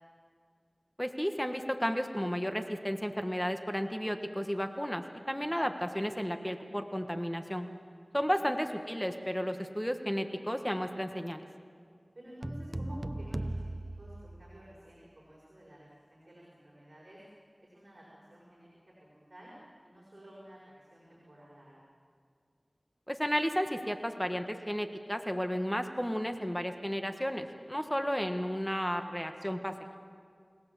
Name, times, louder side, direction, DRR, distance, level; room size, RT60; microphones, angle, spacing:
voice 1, 1.0-7.7 8.1-11.5 23.1-30.0, equal, 10° left, 6 dB, 1.4 m, -33 dB
voice 2, 5.6-5.9 8.2-8.5 12.1-17.2 17.6-19.5 19.8-21.8, equal, 55° right, -6 dB, 6.1 m, -52 dB
sound 1, 12.4-15.0, right 1 dB, 35° right, 0.6 m, -38 dB
30.0 x 17.5 x 7.3 m, 2.1 s
wide cardioid pair, 50°, 0 cm